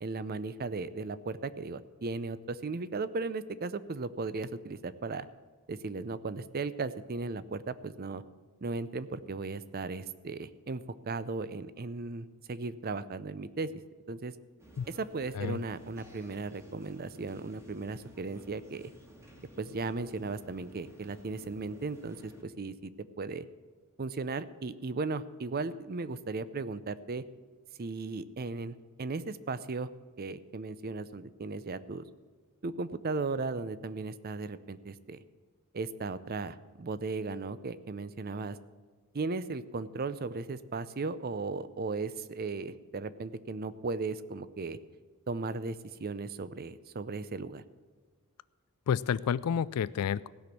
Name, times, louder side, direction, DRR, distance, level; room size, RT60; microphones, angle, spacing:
voice 1, 0.0-5.3 5.7-8.2 8.6-13.7 14.1-14.3 14.9-18.9 19.6-22.9 23.2-23.5 24.0-27.2 27.8-29.9 30.2-32.0 32.6-35.2 35.7-38.6 39.1-44.8 45.3-47.6, right 3 dB, 45° right, 15 dB, 0.5 m, -36 dB
sound 1, 14.6-22.4, equal, 15° right, 1.7 m, -55 dB
voice 2, 48.9-50.3, left 8 dB, 90° left, 18 dB, 0.4 m, -30 dB
16.0 x 6.1 x 8.4 m, 1.5 s
head